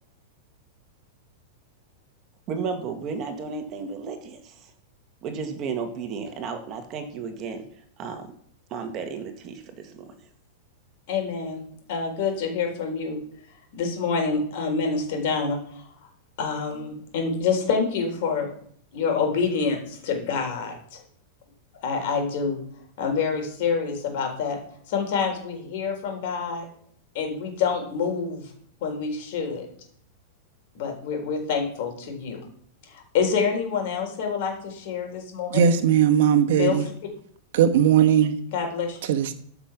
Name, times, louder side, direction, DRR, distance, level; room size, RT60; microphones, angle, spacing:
voice 1, 2.5-4.5 5.2-7.7 8.0-8.3 8.7-10.1, right 5 dB, 30° right, 6 dB, 1.7 m, -33 dB
voice 2, 11.1-11.6 11.9-13.2 13.7-15.9 16.4-18.5 18.9-21.0 21.8-22.6 23.0-24.6 24.9-26.7 27.1-28.5 28.8-29.7 30.7-32.4 32.9-35.7 36.6-36.8 38.5-39.0, left 5 dB, 50° left, 3 dB, 3.9 m, -27 dB
voice 3, 35.5-36.9 37.5-38.4 39.0-39.3, right 9 dB, 65° right, 8 dB, 1.2 m, -19 dB
14.0 x 6.1 x 5.9 m, 0.63 s
supercardioid pair, 160°, 0 cm